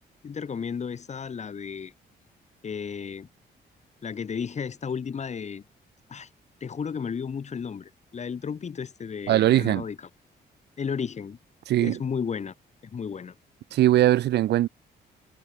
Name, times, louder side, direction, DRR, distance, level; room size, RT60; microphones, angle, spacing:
voice 1, 0.2-1.9 2.6-3.3 4.0-5.6 6.1-6.3 6.6-10.0 10.8-11.4 11.8-12.5 12.9-13.3, left 6 dB, 40° left, 1.0 m, -33 dB
voice 2, 9.3-9.8 11.7-12.0 13.7-14.7, right 14 dB, 65° right, 0.4 m, -20 dB
cardioid pair, 90°, 18 cm